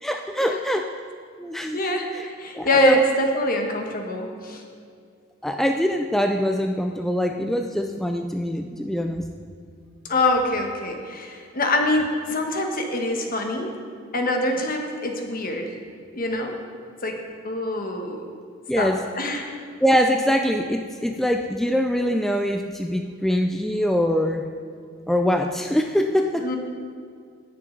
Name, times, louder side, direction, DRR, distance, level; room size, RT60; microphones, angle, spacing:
voice 1, 0.0-0.9 1.4-2.3 2.5-3.0 5.4-9.2 18.7-19.0 19.8-24.5 25.1-26.5, equal, ahead, 4 dB, 0.4 m, -23 dB
voice 2, 1.7-4.6 10.1-13.7 14.1-15.7 16.1-16.5 17.0-18.2 18.8-19.5 26.4-26.6, left 1 dB, 45° left, 3 dB, 1.3 m, -24 dB
18.5 x 6.7 x 3.9 m, 2.3 s
head